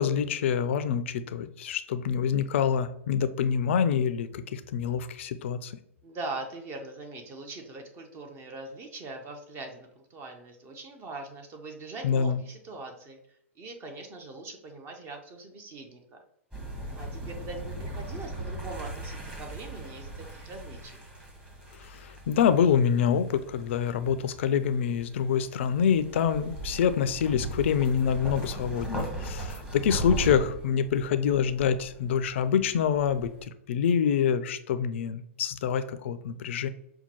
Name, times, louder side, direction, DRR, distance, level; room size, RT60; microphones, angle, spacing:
voice 1, 0.0-5.7 12.0-12.4 21.8-36.7, left 7 dB, 60° left, 12 dB, 0.4 m, -26 dB
voice 2, 6.0-13.2 13.6-16.0 17.0-21.0, right 2 dB, 30° right, 4 dB, 0.7 m, -41 dB
sound 1, 16.5-33.5, right 2 dB, 10° right, 1.2 m, -39 dB
5.5 x 2.2 x 3.0 m, 0.74 s
hypercardioid pair, 105°, 7 cm